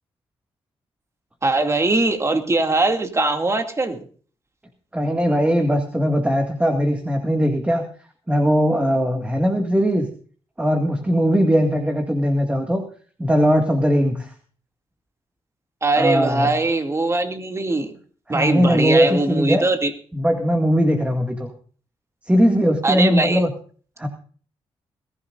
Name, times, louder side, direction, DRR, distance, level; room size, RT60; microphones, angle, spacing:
voice 1, 1.4-4.0 15.8-17.9 18.3-19.9 22.8-23.4, right 2 dB, 30° right, 5 dB, 2.4 m, -21 dB
voice 2, 4.9-7.9 8.3-10.1 10.6-12.8 13.2-14.3 15.9-16.6 18.3-19.6 20.1-21.5 22.3-23.5 24.0-24.1, equal, 10° right, 4 dB, 2.1 m, -19 dB
21.0 x 15.0 x 2.6 m, 0.43 s
cardioid pair, 80°, 10 cm